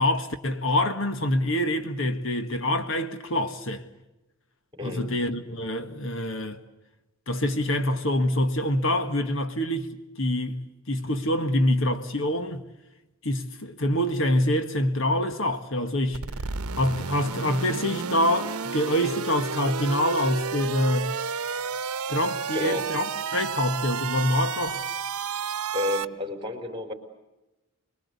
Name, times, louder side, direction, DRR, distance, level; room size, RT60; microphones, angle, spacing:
voice 1, 0.0-3.8 4.8-6.6 7.3-12.7 13.2-16.2 16.7-21.1 22.1-23.0 23.3-24.8, left 1 dB, 60° left, 1.7 m, -26 dB
voice 2, 4.7-5.1 22.5-22.9 25.7-26.9, left 2 dB, 20° right, 4.0 m, -30 dB
sound 1, 16.1-26.1, right 6 dB, 85° right, 0.9 m, -31 dB
26.0 x 22.0 x 8.3 m
head